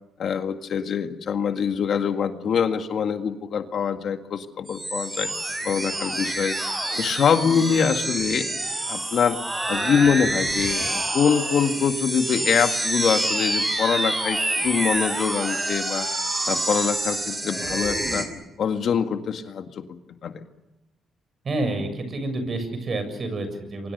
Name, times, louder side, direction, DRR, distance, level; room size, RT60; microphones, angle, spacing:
voice 1, 0.2-5.3 5.6-6.6 7.0-8.5 8.9-9.4 9.7-14.4 14.6-16.1 16.5-18.3 18.6-19.8 20.2-20.4, left 7 dB, 60° left, 7 dB, 1.9 m, -24 dB
sound 1, 4.7-18.2, right 1 dB, 15° right, 6.0 m, -27 dB
voice 2, 21.4-23.9, right 2 dB, 40° right, 9 dB, 7.0 m, -28 dB
28.0 x 24.5 x 6.7 m, 0.96 s
cardioid pair, 90°, 0 cm